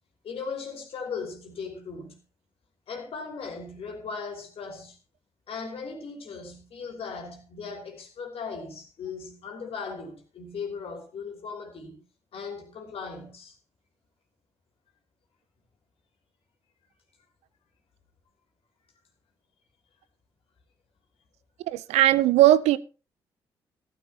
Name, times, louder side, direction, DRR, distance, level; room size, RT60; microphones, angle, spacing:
voice 1, 0.2-2.2 2.9-5.0 5.5-12.0 12.3-13.6, left 5 dB, 55° left, 2.9 m, -38 dB
voice 2, 21.7-22.8, right 14 dB, 65° right, 0.5 m, -19 dB
14.5 x 13.5 x 2.9 m
figure-of-eight pair, 40°, 12 cm